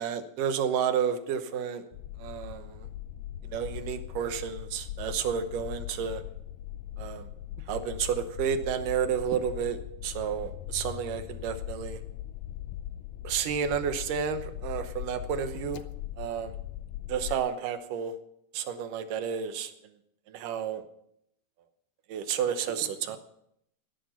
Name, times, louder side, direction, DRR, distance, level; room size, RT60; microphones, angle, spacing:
voice 1, 0.0-1.9 2.2-2.9 3.4-6.2 7.0-7.3 7.7-12.0 13.2-15.9 16.2-16.5 17.1-18.1 18.5-19.7 20.3-20.8 22.1-23.2, right 8 dB, 75° right, 9 dB, 2.6 m, -31 dB
sound 1, 1.9-17.4, left 12 dB, 85° left, 2.3 m, -40 dB
15.0 x 11.0 x 5.7 m, 0.75 s
omnidirectional pair, 3.9 m